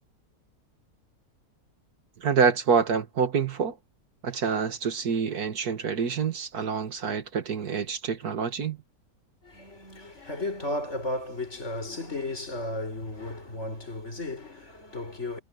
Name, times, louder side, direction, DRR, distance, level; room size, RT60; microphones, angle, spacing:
voice 1, 2.2-3.8 4.2-8.8, right 6 dB, 85° right, 2.2 m, -26 dB
voice 2, 9.4-15.4, left 2 dB, 50° left, 5.4 m, -34 dB
omnidirectional pair, 1.6 m